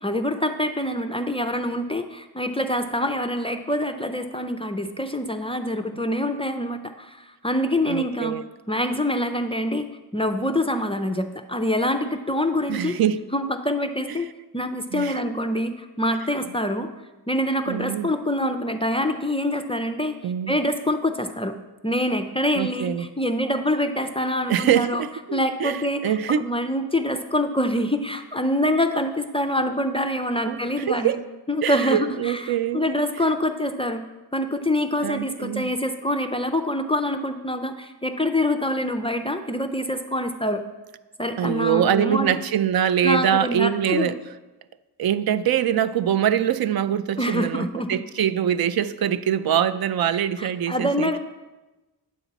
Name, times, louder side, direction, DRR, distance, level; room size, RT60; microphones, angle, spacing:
voice 1, 0.0-8.4 8.7-9.9 10.1-13.0 13.3-14.3 14.5-16.9 17.3-20.2 20.5-21.5 21.8-25.0 25.3-26.1 26.4-31.2 31.5-34.0 34.3-40.6 41.2-42.4 43.0-44.1 47.2-48.0 50.4-51.2, left 1 dB, 15° left, 7 dB, 0.4 m, -25 dB
voice 2, 7.9-8.4 12.7-13.2 14.9-15.2 17.7-18.1 20.2-20.5 22.5-23.1 24.5-26.5 30.5-30.6 30.9-31.2 31.6-32.9 35.0-35.7 41.4-44.2 45.0-51.1, right 9 dB, 65° right, 13 dB, 0.5 m, -23 dB
9.4 x 7.1 x 4.0 m, 1.1 s
wide cardioid pair, 135°, 40 cm